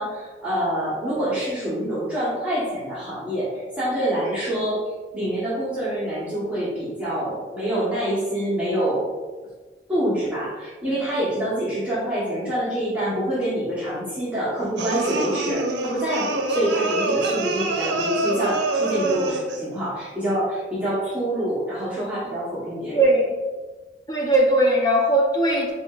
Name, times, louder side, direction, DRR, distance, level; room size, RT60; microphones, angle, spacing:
voice 1, 0.0-4.8 5.1-9.1 9.9-23.1, right 1 dB, 10° right, -10 dB, 1.1 m, -26 dB
sound 1, 14.8-19.7, right 2 dB, 80° right, 0.5 m, -25 dB
voice 2, 22.9-23.4 24.1-25.7, right 1 dB, 20° left, -2 dB, 0.7 m, -19 dB
7.6 x 2.8 x 2.4 m, 1.3 s
head